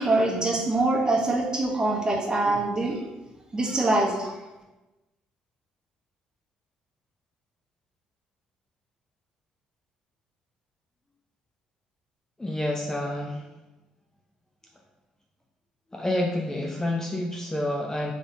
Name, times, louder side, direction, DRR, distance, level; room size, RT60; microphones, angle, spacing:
voice 1, 0.0-3.0 3.5-4.4, right 2 dB, 20° right, -2 dB, 1.2 m, -24 dB
voice 2, 12.4-13.5 15.9-18.1, left 1 dB, 15° left, 0 dB, 0.6 m, -28 dB
3.9 x 3.4 x 3.5 m, 1.0 s
hypercardioid pair, 50°, 4 cm